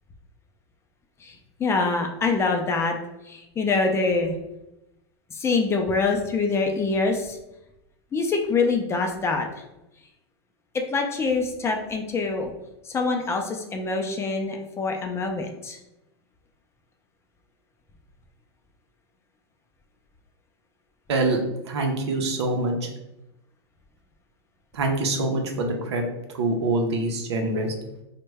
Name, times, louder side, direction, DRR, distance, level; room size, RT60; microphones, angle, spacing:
voice 1, 1.6-2.9 3.3-4.3 5.3-7.4 8.1-9.5 10.9-12.5 12.9-15.8, left 4 dB, 20° left, 3 dB, 0.4 m, -25 dB
voice 2, 21.7-22.9 24.7-26.0 26.3-27.7, right 2 dB, 85° right, 2 dB, 0.6 m, -25 dB
3.0 x 2.2 x 3.3 m, 0.93 s
hypercardioid pair, 120°, 14 cm